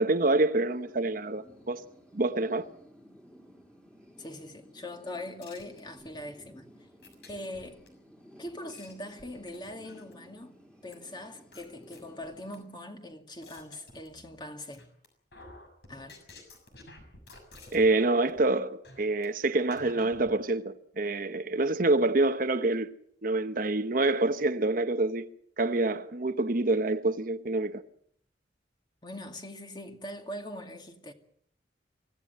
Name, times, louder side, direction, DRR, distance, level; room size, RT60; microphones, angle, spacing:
voice 1, 0.0-1.9 2.1-2.7 17.7-22.9 23.2-25.3 25.6-27.8, right 2 dB, 50° right, 1.0 m, -26 dB
sound 1, 0.7-12.6, equal, 5° left, 3.0 m, -55 dB
voice 2, 4.2-6.7 7.3-7.8 8.4-10.6 10.8-14.9 15.9-16.2 29.0-31.1, left 1 dB, 25° left, 2.3 m, -42 dB
sound 2, 5.4-6.2 7.0-7.9 8.5-10.3 10.9-11.0 11.5-12.6 13.1-14.4 14.7-15.1 15.3-18.0 18.3-18.5 18.8-19.3 19.7-20.3, left 2 dB, 65° left, 6.6 m, -51 dB
25.0 x 16.5 x 7.9 m
head